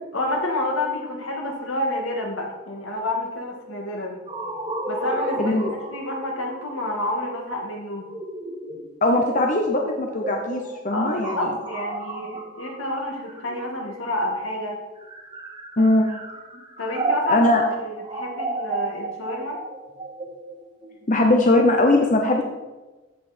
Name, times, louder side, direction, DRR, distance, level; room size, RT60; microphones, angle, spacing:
voice 1, 0.1-4.3 4.9-5.5 5.9-8.0 10.9-14.8 15.8-15.9 16.8-17.5 17.8-19.6, left 1 dB, 75° left, 0 dB, 2.2 m, -29 dB
sound 1, 4.3-14.1 14.9-21.8, right 2 dB, 25° right, 1.4 m, -33 dB
voice 2, 5.4-5.7 9.0-11.5 15.8-16.1 17.3-17.6 21.1-22.4, left 2 dB, 40° left, 1 dB, 0.9 m, -20 dB
14.5 x 6.0 x 4.4 m, 1.2 s
head